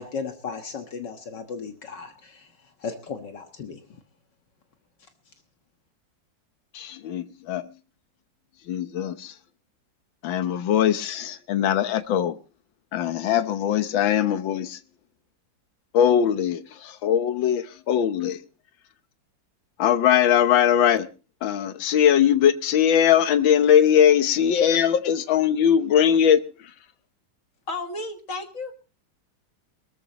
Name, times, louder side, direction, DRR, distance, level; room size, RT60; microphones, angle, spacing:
voice 1, 0.0-2.5 2.8-3.8, left 5 dB, 65° left, 2.0 m, -35 dB
voice 2, 6.7-7.7 8.7-9.3 10.2-12.4 12.9-14.8 15.9-18.4 19.8-21.1 21.4-26.4, left 9 dB, 85° left, 1.8 m, -20 dB
voice 3, 27.7-28.7, left 2 dB, 45° left, 2.1 m, -32 dB
23.0 x 14.0 x 3.0 m
omnidirectional pair, 2.0 m